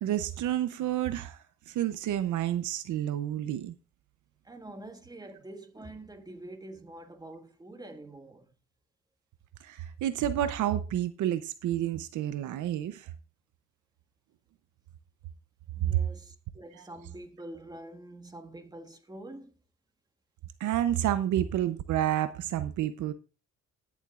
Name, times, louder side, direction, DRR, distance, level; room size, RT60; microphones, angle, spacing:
voice 1, 0.0-3.7 9.6-13.1 15.9-16.0 16.8-16.9 20.6-23.1, right 11 dB, 75° right, 0.7 m, -30 dB
voice 2, 4.4-8.4 15.7-19.5, right 1 dB, 15° right, 1.7 m, -46 dB
19.5 x 7.2 x 2.4 m
cardioid pair, 90°, 30 cm